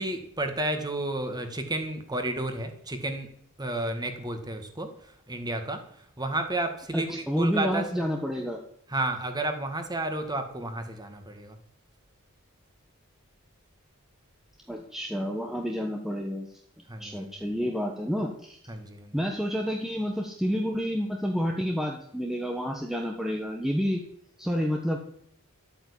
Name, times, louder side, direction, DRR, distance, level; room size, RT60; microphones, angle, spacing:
voice 1, 0.0-3.3 3.6-8.1 8.9-11.6 16.9-17.5 18.7-19.2, right 2 dB, 20° right, 6 dB, 1.9 m, -32 dB
voice 2, 6.9-8.6 14.7-16.5 17.0-18.6 19.1-24.0 24.4-25.0, equal, ahead, 1 dB, 1.3 m, -29 dB
12.5 x 8.9 x 8.5 m, 0.68 s
head